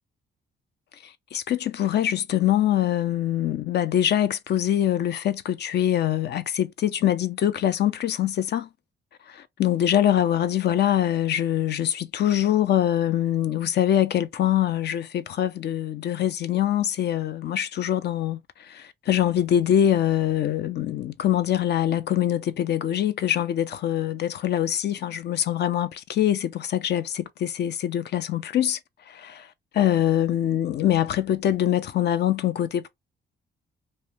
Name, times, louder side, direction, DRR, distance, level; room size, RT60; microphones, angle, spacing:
voice 1, 1.0-8.7 9.3-28.8 29.1-29.5 29.7-32.9, left 11 dB, 55° left, 0.5 m, -24 dB
2.7 x 2.1 x 3.3 m
cardioid pair, 90°, 20 cm